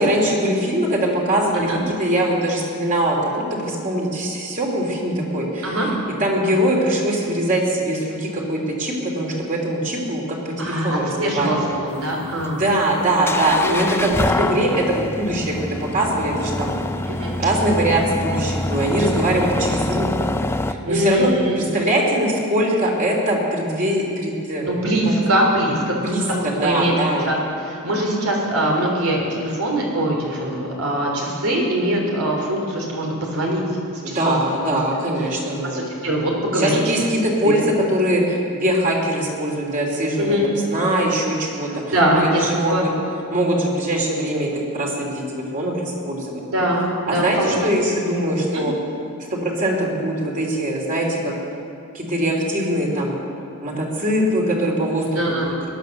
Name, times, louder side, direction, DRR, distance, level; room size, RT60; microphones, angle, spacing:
voice 1, 0.0-5.9 6.2-11.7 12.5-15.5 15.9-16.7 17.4-20.3 20.7-24.7 26.0-26.2 26.6-27.3 34.1-35.8 36.5-40.4 40.7-41.7 42.1-42.9 43.3-46.4 47.1-48.7 49.3-51.3 51.9-53.2 53.6-55.1 55.4-55.5, right 1 dB, 40° right, -1 dB, 3.0 m, -22 dB
voice 2, 10.6-12.6 13.6-14.5 17.1-17.4 20.9-21.6 24.6-25.9 26.3-27.0 27.2-33.6 34.1-34.2 35.7-37.0 37.4-37.6 40.2-40.5 41.9-42.9 46.5-47.7 48.5-48.6 55.1-55.5, right 1 dB, 80° right, -1 dB, 3.5 m, -22 dB
sound 1, 11.6-20.7, left 1 dB, 10° left, 0.5 m, -25 dB
17.5 x 11.5 x 6.6 m, 2.6 s
head